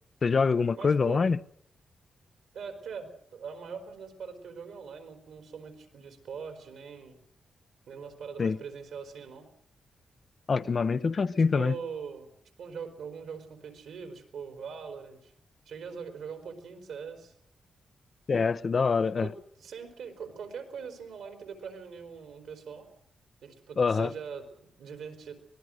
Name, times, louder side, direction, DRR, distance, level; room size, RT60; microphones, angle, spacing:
voice 1, 0.2-1.4 8.4-8.6 10.5-11.8 18.3-19.3 23.8-24.1, left 5 dB, 50° left, 0.8 m, -25 dB
voice 2, 0.8-1.2 2.5-7.2 7.9-9.5 11.5-12.3 12.6-15.3 15.7-17.3 19.2-19.3 19.6-22.9 23.4-25.3, right 6 dB, 85° right, 4.3 m, -42 dB
25.0 x 19.5 x 6.5 m
cardioid pair, 65°, 0 cm